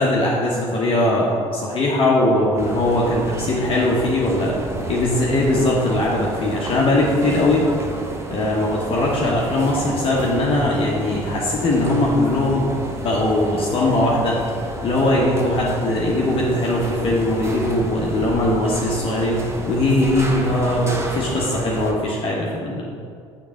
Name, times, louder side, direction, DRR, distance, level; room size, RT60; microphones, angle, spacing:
voice 1, 0.0-4.6 4.9-7.7 8.3-12.7 13.0-14.4 14.8-22.8, left 1 dB, 35° left, -4 dB, 1.2 m, -20 dB
sound 1, 2.6-21.9, right 2 dB, 20° right, 1.0 m, -31 dB
7.1 x 3.9 x 6.3 m, 2.3 s
figure-of-eight pair, 55°, 15 cm